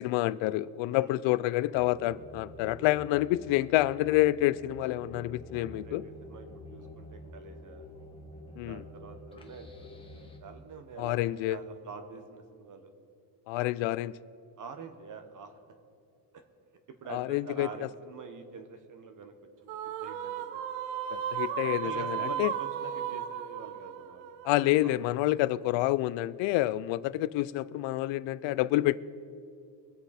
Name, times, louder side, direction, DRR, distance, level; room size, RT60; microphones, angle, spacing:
voice 1, 0.0-6.0 8.6-8.8 11.0-11.6 13.5-14.1 17.1-17.7 21.1-22.5 24.4-29.0, left 16 dB, 70° left, 0.5 m, -28 dB
sound 1, 1.7-10.4, left 2 dB, 10° left, 1.4 m, -48 dB
voice 2, 5.6-7.8 8.6-12.9 14.6-15.6 17.0-19.3 19.8-20.4 21.6-24.3 24.6-25.0 26.6-26.8, right 5 dB, 40° right, 1.3 m, -46 dB
sound 2, 19.7-25.1, right 9 dB, 75° right, 0.9 m, -35 dB
24.0 x 8.1 x 4.2 m
cardioid pair, 145°, 47 cm